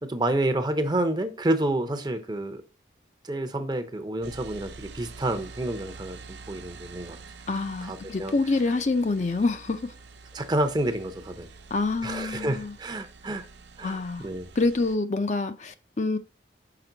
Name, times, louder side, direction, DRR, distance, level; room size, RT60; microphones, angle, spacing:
voice 1, 0.0-2.6 3.2-7.2 7.8-8.3 10.3-11.5 12.0-13.4 13.8-14.5, right 1 dB, 25° right, 0.6 m, -29 dB
sound 1, 4.2-15.0, right 4 dB, 80° right, 0.6 m, -47 dB
voice 2, 7.5-9.9 11.7-12.7 13.8-14.3 14.6-16.2, left 3 dB, 40° left, 0.5 m, -26 dB
5.9 x 5.2 x 3.8 m
head